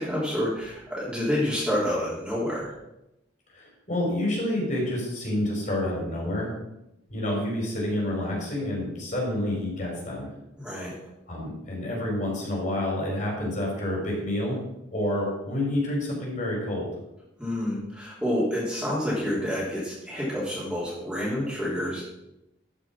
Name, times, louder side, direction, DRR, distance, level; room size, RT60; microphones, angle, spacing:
voice 1, 0.0-2.7 10.6-10.9 17.4-22.0, equal, 5° right, -8 dB, 3.3 m, -28 dB
voice 2, 3.5-6.5 7.1-10.3 11.3-14.6 14.9-16.9, left 1 dB, 40° left, -2 dB, 4.5 m, -28 dB
13.0 x 6.0 x 6.0 m, 0.90 s
head